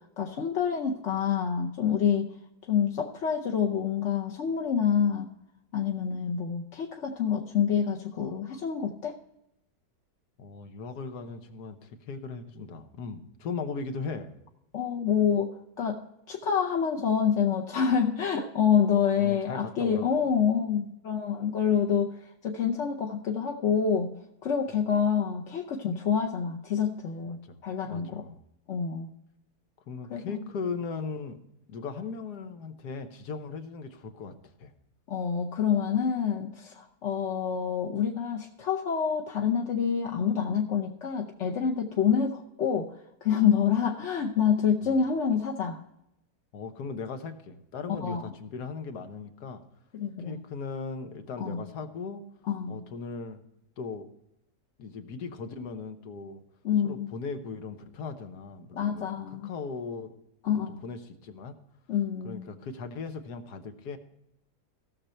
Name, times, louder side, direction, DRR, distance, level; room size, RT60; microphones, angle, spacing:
voice 1, 0.2-2.3 2.7-5.3 5.7-9.1 14.7-24.1 24.4-28.2 28.7-29.1 30.1-30.5 35.1-42.9 43.2-45.8 48.0-48.2 49.9-50.4 51.4-51.6 52.5-52.8 56.6-57.1 58.7-59.5 60.4-60.8 61.9-62.5, left 7 dB, 50° left, 1 dB, 1.0 m, -27 dB
voice 2, 10.4-14.3 19.2-20.3 27.3-27.6 27.9-28.4 29.9-31.4 31.7-34.7 44.8-45.0 46.5-49.6 50.2-52.2 52.7-53.4 53.8-54.1 54.8-56.4 56.8-60.1 60.5-61.6 62.2-64.0, left 4 dB, 75° left, 8 dB, 1.6 m, -38 dB
16.5 x 6.7 x 4.3 m, 0.83 s
omnidirectional pair, 1.8 m